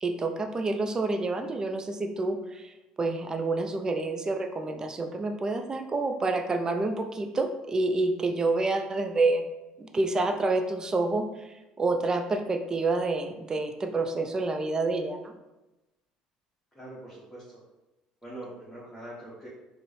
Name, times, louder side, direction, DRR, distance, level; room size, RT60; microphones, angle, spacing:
voice 1, 0.0-9.4 9.8-15.3, right 3 dB, 25° right, 6 dB, 0.4 m, -28 dB
voice 2, 16.7-17.6 18.2-19.5, right 1 dB, 5° left, -8 dB, 1.1 m, -43 dB
4.2 x 2.0 x 3.1 m, 1.0 s
supercardioid pair, 80°, 3 cm